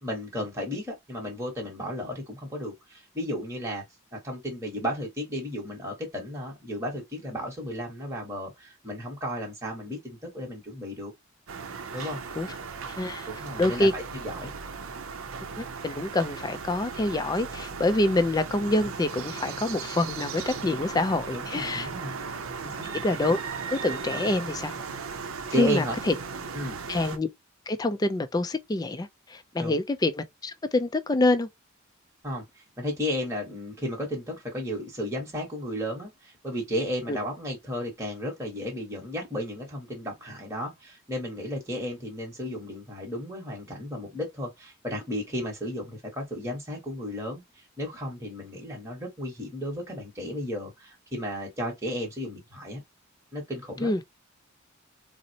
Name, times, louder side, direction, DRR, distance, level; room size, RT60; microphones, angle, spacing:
voice 1, 0.0-3.8 4.1-11.1 11.9-12.2 13.3-14.5 21.3-22.2 22.6-22.9 25.5-26.0 26.5-26.8 29.6-29.8 32.2-32.4 32.8-52.8 53.3-53.9, equal, 15° right, 1.1 m, -34 dB
sound 1, 11.5-27.2, right 5 dB, 70° right, 0.6 m, -37 dB
voice 2, 13.0-13.3 13.6-13.9 15.6-21.9 23.0-23.4 23.7-24.7 25.6-26.1 26.9-27.3 27.7-31.5 37.1-37.2 53.8-54.0, left 2 dB, 20° left, 0.3 m, -26 dB
4.0 x 2.0 x 2.6 m
head